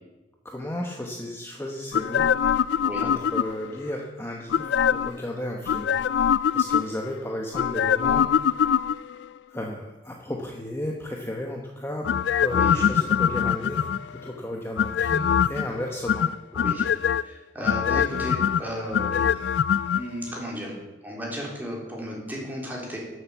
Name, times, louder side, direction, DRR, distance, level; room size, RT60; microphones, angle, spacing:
voice 1, 0.4-2.3 2.6-2.7 3.0-8.9 9.5-16.3, left 1 dB, 15° left, 0 dB, 1.1 m, -34 dB
sound 1, 1.9-3.8 4.5-5.2 5.7-7.1 7.5-9.2 12.0-14.2 14.8-15.7 16.1-17.2 17.6-20.0 20.3-20.4, left 8 dB, 75° left, 0.3 m, -23 dB
voice 2, 12.5-12.9 16.6-16.9 17.2-19.3 19.9-20.7 21.0-23.0, equal, 10° right, -3 dB, 3.7 m, -34 dB
12.5 x 7.8 x 7.0 m, 1.1 s
head